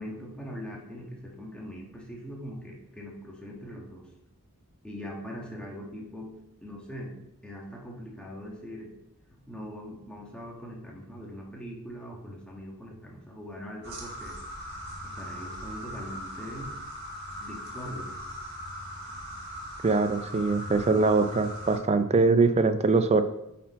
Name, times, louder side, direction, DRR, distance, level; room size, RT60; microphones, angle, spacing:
voice 1, 0.0-4.1 4.8-6.4 6.6-7.1 7.4-8.9 9.5-14.4 15.0-16.7 17.4-18.2, equal, 5° left, -2 dB, 1.3 m, -41 dB
Cicada landing, 13.8-21.8, equal, 45° right, 1.8 m, -40 dB
voice 2, 19.8-23.2, right 3 dB, 30° right, 11 dB, 0.4 m, -23 dB
8.5 x 4.3 x 4.1 m, 0.87 s
head